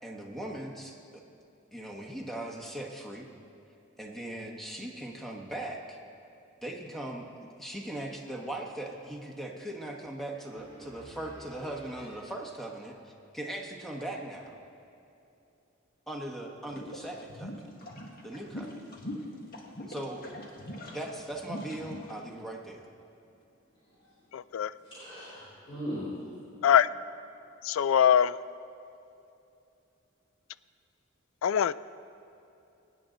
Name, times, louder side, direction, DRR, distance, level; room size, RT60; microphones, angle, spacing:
voice 1, 0.0-1.2 1.7-3.3 4.0-6.0 6.6-14.5 16.1-17.5 18.2-18.9 19.9-20.2 20.9-22.8, right 1 dB, ahead, 0 dB, 1.3 m, -39 dB
voice 2, 10.5-11.4 11.7-12.0 24.0-24.1 24.8-26.1, equal, 25° left, -10 dB, 3.5 m, -41 dB
sound 1, 16.7-22.1, left 1 dB, 50° left, 1.7 m, -42 dB
voice 3, 24.3-24.7 26.6-26.9 27.7-28.3 31.4-31.7, left 9 dB, 75° left, 17 dB, 0.3 m, -22 dB
22.5 x 9.3 x 3.9 m, 2.7 s
head